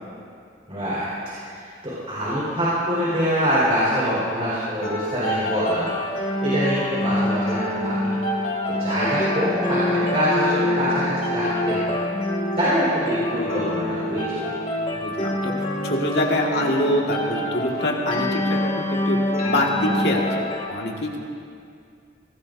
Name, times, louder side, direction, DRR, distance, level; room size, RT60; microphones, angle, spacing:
voice 1, 0.7-1.1 1.5-5.9 6.4-8.1 8.7-12.0 12.6-14.5, equal, 35° right, -9 dB, 4.4 m, -24 dB
sound 1, 4.8-20.7, left 1 dB, 30° left, 1.9 m, -26 dB
voice 2, 14.9-15.5 15.8-19.2 19.5-21.2, left 1 dB, 65° left, -1 dB, 1.8 m, -25 dB
24.0 x 18.0 x 2.7 m, 2.4 s
head